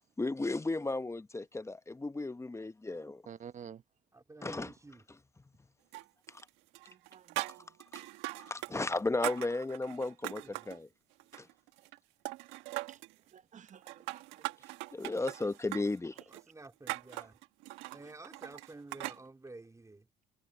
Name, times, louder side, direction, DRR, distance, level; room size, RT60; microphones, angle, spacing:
voice 1, 0.2-3.2 4.4-4.7 6.3-6.4 7.4-7.5 7.9-8.0 8.4-10.9 11.3-11.5 14.9-16.1 17.2-17.3, left 2 dB, 15° left, 1.0 m, -35 dB
voice 2, 3.3-3.8 6.9-7.7 12.9-13.0 13.3-14.5, right 8 dB, 45° right, 1.0 m, -51 dB
voice 3, 4.1-5.0 8.7-9.1 10.4-10.6 16.3-17.3 17.9-20.1, right 2 dB, 15° right, 3.1 m, -51 dB
sound 1, 5.9-6.5 6.7-8.7 9.0-10.8 11.2-12.0 12.3-13.1 13.7-19.2, right 20 dB, 80° right, 1.5 m, -41 dB
supercardioid pair, 70°, 18 cm